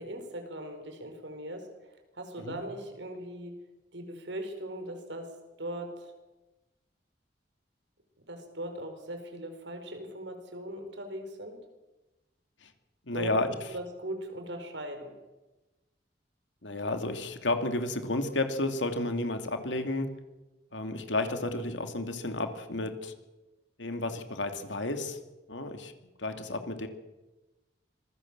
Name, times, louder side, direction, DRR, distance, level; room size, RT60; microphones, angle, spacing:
voice 1, 0.0-3.6 3.9-6.1 8.2-11.7 13.1-13.3 13.7-15.2, right 1 dB, 85° right, 6 dB, 5.1 m, -40 dB
voice 2, 13.1-13.5 16.6-20.1 20.7-23.1 23.8-25.2 25.5-25.9 26.2-26.9, left 2 dB, 90° left, 7 dB, 2.6 m, -32 dB
26.0 x 20.5 x 7.5 m, 1.1 s
head